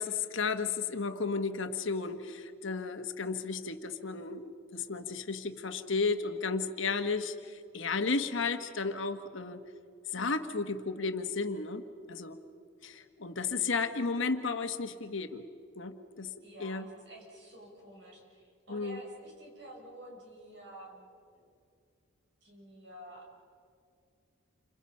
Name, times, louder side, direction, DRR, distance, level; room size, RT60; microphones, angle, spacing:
voice 1, 0.0-9.6 10.1-12.4 12.8-15.4 15.8-16.3 16.6-16.9 18.7-19.0, left 4 dB, 65° left, 8 dB, 1.4 m, -33 dB
voice 2, 16.4-21.5 22.4-23.3, right 1 dB, 60° right, -1 dB, 7.2 m, -50 dB
29.5 x 27.0 x 5.7 m, 2.4 s
head